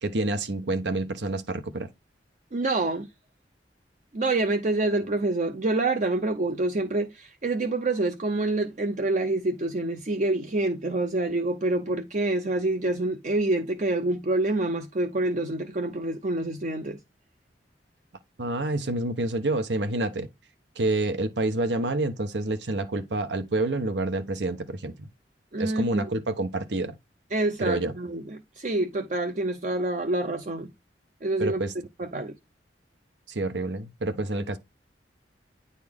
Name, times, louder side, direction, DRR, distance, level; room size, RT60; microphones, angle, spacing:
voice 1, 0.0-1.9 18.4-20.3 20.8-25.1 25.6-26.9 27.6-27.9 31.4-31.7 33.3-34.6, right 2 dB, 75° right, 1.0 m, -28 dB
voice 2, 2.5-3.1 4.1-17.0 25.5-26.0 27.3-30.7 31.2-31.6 32.0-32.3, right 2 dB, 45° right, 0.7 m, -27 dB
9.5 x 4.2 x 3.5 m
head